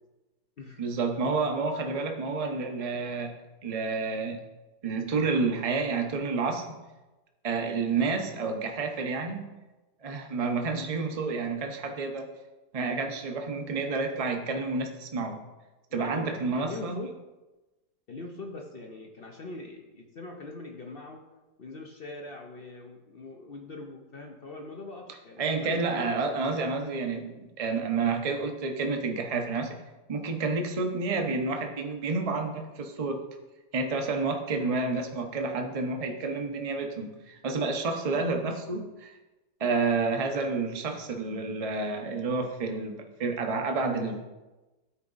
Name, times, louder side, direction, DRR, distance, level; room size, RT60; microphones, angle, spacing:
voice 1, 0.8-3.3 3.6-4.4 4.8-6.7 7.4-9.5 10.0-12.3 12.7-15.4 15.9-17.0 25.4-29.8 30.1-33.2 33.7-39.1 39.6-44.2, right 4 dB, 35° right, 4 dB, 0.5 m, -29 dB
voice 2, 15.9-17.2 18.1-21.3 21.6-26.8 34.5-34.8 38.1-38.3 43.9-44.2, left 3 dB, 55° left, 2 dB, 0.6 m, -42 dB
12.5 x 4.8 x 4.0 m, 1.1 s
omnidirectional pair, 1.9 m